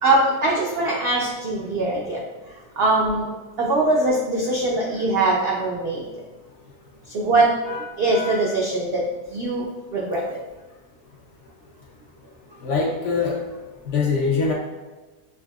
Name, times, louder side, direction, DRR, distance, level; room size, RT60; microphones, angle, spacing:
voice 1, 0.0-2.2 2.8-3.3 3.6-6.1 7.1-7.5 8.0-9.0 9.3-9.7 9.9-10.4, right 2 dB, 70° right, -3 dB, 0.5 m, -22 dB
voice 2, 8.1-8.4 12.6-13.4 13.9-14.5, left 4 dB, 60° left, -2 dB, 0.8 m, -23 dB
5.9 x 2.7 x 2.3 m, 1.2 s
omnidirectional pair, 1.7 m